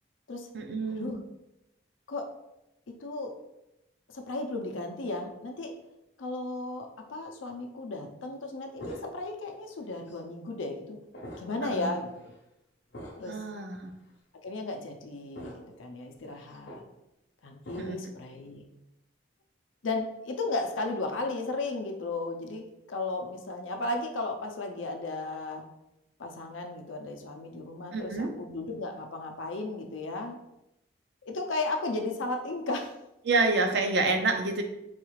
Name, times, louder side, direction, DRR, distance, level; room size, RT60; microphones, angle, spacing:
voice 1, 0.5-1.1 11.6-11.9 13.3-13.9 17.8-18.0 27.9-28.3 33.2-34.6, right 3 dB, 60° right, 5 dB, 0.5 m, -28 dB
voice 2, 3.0-3.3 4.1-5.7 6.2-11.0 11.4-12.3 13.2-13.4 14.4-16.8 17.4-18.6 19.8-25.6 26.2-30.4 31.3-32.9, left 2 dB, 90° left, 4 dB, 0.5 m, -35 dB
sound 1, 8.8-9.4 10.1-10.2 11.1-11.7 12.1-12.3 12.9-13.4 14.1-14.2 15.3-15.8 16.2-16.9 17.6-18.1, equal, 60° left, 0.8 m, -45 dB
4.0 x 2.4 x 3.1 m, 0.87 s
head